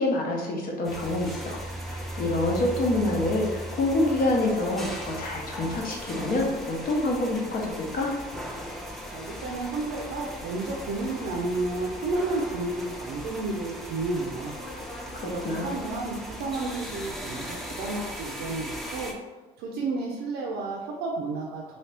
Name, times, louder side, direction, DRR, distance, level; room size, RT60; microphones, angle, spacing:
voice 1, 0.0-1.6 1.9-8.1 15.2-15.7, left 2 dB, 55° left, -1 dB, 0.8 m, -27 dB
sound 1, 0.8-19.1, equal, ahead, 0.5 m, -38 dB
voice 2, 9.1-14.5 15.2-19.1 19.6-21.8, right 2 dB, 90° right, -2 dB, 0.5 m, -31 dB
2.8 x 2.8 x 3.3 m, 1.2 s
cardioid pair, 110°, 17 cm